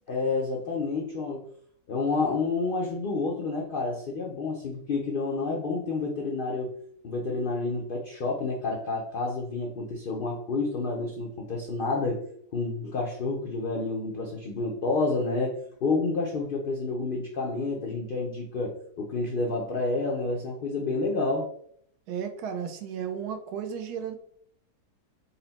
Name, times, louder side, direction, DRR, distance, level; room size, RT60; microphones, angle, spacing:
voice 1, 0.1-1.5 1.9-6.7 7.0-12.2 12.5-21.5, left 3 dB, 75° left, -1 dB, 0.4 m, -29 dB
voice 2, 22.1-24.2, right 7 dB, 85° right, 6 dB, 1.1 m, -34 dB
4.1 x 2.1 x 3.9 m, 0.65 s
omnidirectional pair, 1.6 m